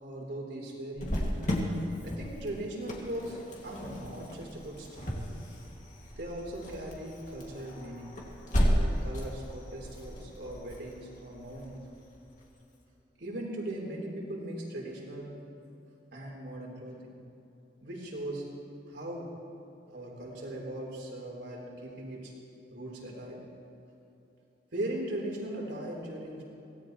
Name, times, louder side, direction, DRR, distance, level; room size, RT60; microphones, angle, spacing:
voice 1, 0.0-1.3 2.0-5.3 6.2-8.1 8.7-11.8 13.2-15.4 16.1-17.2 17.8-18.5 18.9-19.3 19.9-22.3 22.7-23.4 24.7-26.4, right 1 dB, 75° right, -2 dB, 3.7 m, -39 dB
Cricket, 1.0-12.4, equal, 45° left, 2.3 m, -34 dB
24.5 x 17.5 x 3.1 m, 2.9 s
head